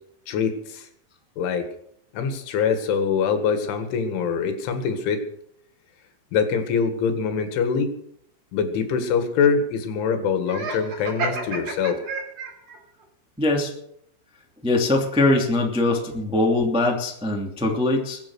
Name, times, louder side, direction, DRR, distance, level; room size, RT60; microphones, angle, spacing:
voice 1, 0.3-0.9 1.4-1.7 2.1-5.2 6.3-7.9 8.5-12.0, left 6 dB, 80° left, 7 dB, 4.1 m, -24 dB
Laughter, 10.5-12.8, right 3 dB, 45° right, 4.2 m, -30 dB
voice 2, 13.4-13.7 14.6-18.2, left 2 dB, 5° right, 0 dB, 0.6 m, -22 dB
22.5 x 8.8 x 6.3 m, 0.72 s
omnidirectional pair, 5.5 m